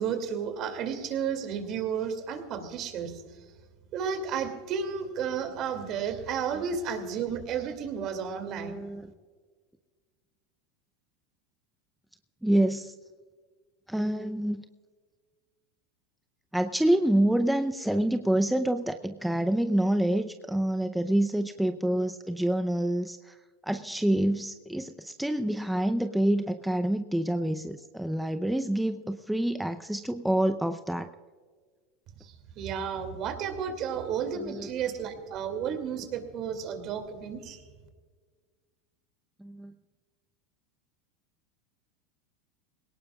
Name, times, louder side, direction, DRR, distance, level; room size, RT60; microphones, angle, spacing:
voice 1, 0.0-3.2 3.9-8.8 32.2-37.7, right 7 dB, 50° right, 7 dB, 2.5 m, -32 dB
voice 2, 8.4-9.0 12.4-12.9 13.9-14.6 16.5-23.3 23.6-31.1 34.4-34.7 39.4-39.7, right 1 dB, 5° right, 7 dB, 0.6 m, -27 dB
21.0 x 18.0 x 2.4 m, 1.5 s
hypercardioid pair, 105°, 0 cm